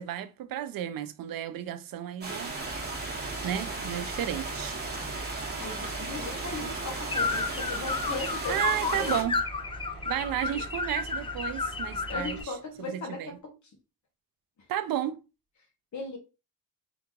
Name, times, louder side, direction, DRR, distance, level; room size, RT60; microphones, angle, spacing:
voice 1, 0.0-2.5 3.4-4.8 8.5-9.4 10.1-12.4 13.2-13.3 14.7-15.2, right 11 dB, 85° right, 0.6 m, -32 dB
sound 1, 2.2-9.2, right 3 dB, 30° right, 1.4 m, -36 dB
Engine, 2.6-12.4, right 1 dB, 90° left, 1.5 m, -43 dB
voice 2, 5.2-8.6 8.9-9.2 9.9-10.0 10.5-10.6 12.1-13.6 15.9-16.2, left 3 dB, 55° left, 1.6 m, -38 dB
sound 2, 7.1-12.4, left 4 dB, 15° left, 0.4 m, -32 dB
3.9 x 2.9 x 3.6 m
cardioid pair, 115°, 34 cm